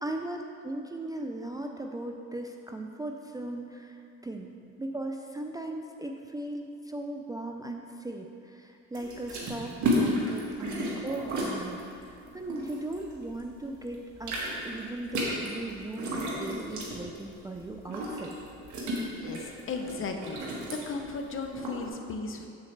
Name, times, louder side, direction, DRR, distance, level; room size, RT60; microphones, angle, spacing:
voice 1, 0.0-4.5 4.8-14.4 14.6-18.4, right 1 dB, 15° right, 2 dB, 0.4 m, -38 dB
sound 1, 8.9-13.5 13.8-21.8, equal, 70° right, 1.5 m, -33 dB
voice 2, 19.2-20.4 20.7-22.5, left 4 dB, 45° left, 4 dB, 0.8 m, -36 dB
7.4 x 7.1 x 3.3 m, 2.5 s
cardioid pair, 90°, 30 cm